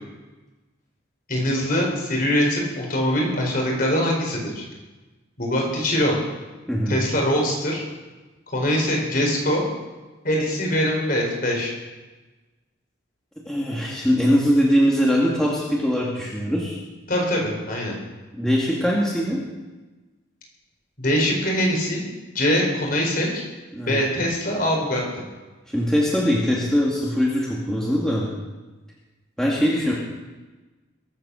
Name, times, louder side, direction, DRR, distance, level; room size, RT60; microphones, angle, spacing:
voice 1, 1.3-4.6 5.4-6.2 6.9-7.8 8.5-9.6 10.2-11.7 17.1-17.9 21.0-22.0 22.3-23.4 23.8-25.0, equal, 45° left, -1 dB, 4.6 m, -23 dB
voice 2, 6.7-7.0 13.5-16.8 18.3-19.4 23.7-24.0 25.7-28.3 29.4-29.9, equal, 5° left, -5 dB, 2.3 m, -21 dB
22.0 x 8.7 x 6.5 m, 1.2 s
head